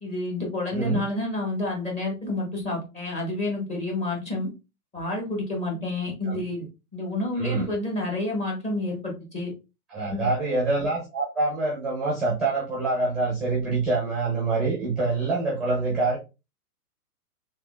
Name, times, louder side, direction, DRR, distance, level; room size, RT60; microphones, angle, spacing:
voice 1, 0.0-4.5 4.9-6.7 6.9-9.5 10.1-10.3, left 2 dB, 15° left, -1 dB, 1.2 m, -29 dB
voice 2, 0.7-1.0 6.3-6.4 7.3-7.7 9.9-16.2, right 3 dB, ahead, -3 dB, 0.7 m, -25 dB
3.5 x 3.1 x 2.4 m, 0.27 s
hypercardioid pair, 140°, 45 cm